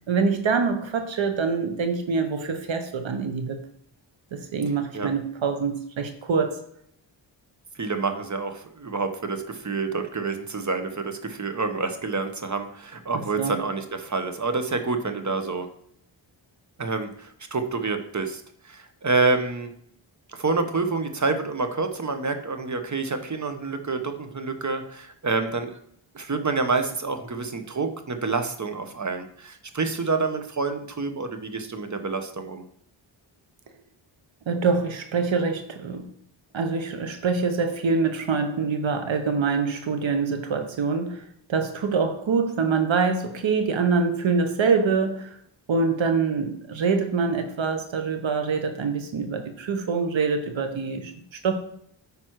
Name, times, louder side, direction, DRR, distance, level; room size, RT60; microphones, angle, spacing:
voice 1, 0.1-3.6 4.3-6.6 13.4-13.6 34.5-36.1 36.5-45.4 45.7-51.5, right 5 dB, 75° right, 6 dB, 1.2 m, -25 dB
voice 2, 7.8-15.7 16.8-19.7 20.4-25.8 26.1-32.6, right 4 dB, 40° right, 7 dB, 1.2 m, -28 dB
9.3 x 5.2 x 4.7 m, 0.67 s
wide cardioid pair, 80°, 46 cm